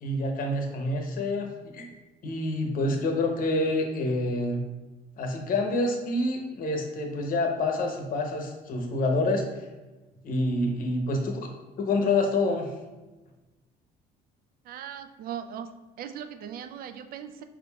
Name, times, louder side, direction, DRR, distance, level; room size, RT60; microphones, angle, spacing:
voice 1, 0.0-1.9 2.2-4.6 5.2-9.4 10.2-11.5 11.8-12.7, left 2 dB, 55° left, 3 dB, 0.8 m, -27 dB
voice 2, 14.6-15.7 16.0-17.4, right 9 dB, 60° right, 8 dB, 0.4 m, -38 dB
4.8 x 3.6 x 2.3 m, 1.2 s
cardioid pair, 110°, 17 cm